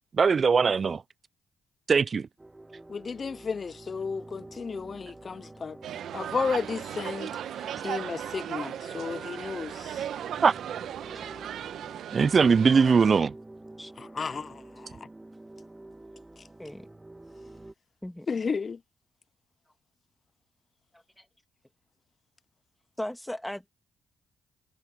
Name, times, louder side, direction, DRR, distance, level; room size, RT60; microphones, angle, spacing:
voice 1, 0.2-1.0 1.9-2.3 10.4-10.5 12.1-13.3, right 5 dB, 45° right, 0.3 m, -21 dB
sound 1, 2.4-17.7, right 2 dB, 15° right, 1.8 m, -48 dB
voice 2, 2.9-5.8 6.1-7.3 7.8-10.1 14.0-15.0 18.3-18.8, left 5 dB, 45° left, 0.4 m, -33 dB
sound 2, 5.8-13.2, right 10 dB, 70° right, 1.2 m, -37 dB
voice 3, 23.0-23.7, left 1 dB, 5° left, 2.5 m, -37 dB
supercardioid pair, 65°, 0 cm